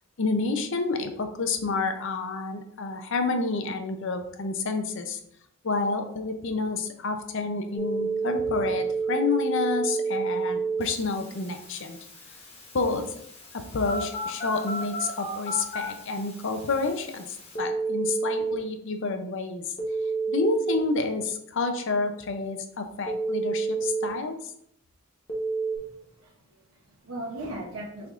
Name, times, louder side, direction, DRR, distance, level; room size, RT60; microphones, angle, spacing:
voice 1, 0.2-5.2 5.6-12.0 12.7-13.1 13.5-19.7 20.3-24.5, left 4 dB, 60° left, 6 dB, 0.6 m, -29 dB
Telephone, 7.8-18.6 19.8-20.8 23.1-24.1 25.3-25.8, right 4 dB, 25° left, 1.0 m, -30 dB
voice 2, 25.8-28.1, right 1 dB, 70° right, -2 dB, 0.8 m, -39 dB
6.3 x 3.5 x 2.5 m, 0.70 s
head